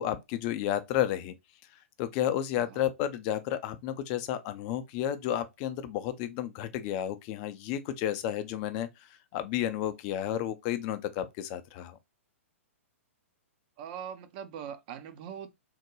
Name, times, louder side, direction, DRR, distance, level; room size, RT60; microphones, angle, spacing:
voice 1, 0.0-1.3 2.0-8.9 9.3-12.0, left 11 dB, 35° left, 0.5 m, -31 dB
voice 2, 2.5-2.9 13.8-15.5, right 8 dB, 40° right, 0.5 m, -41 dB
3.6 x 2.1 x 3.0 m
figure-of-eight pair, 110°, 7 cm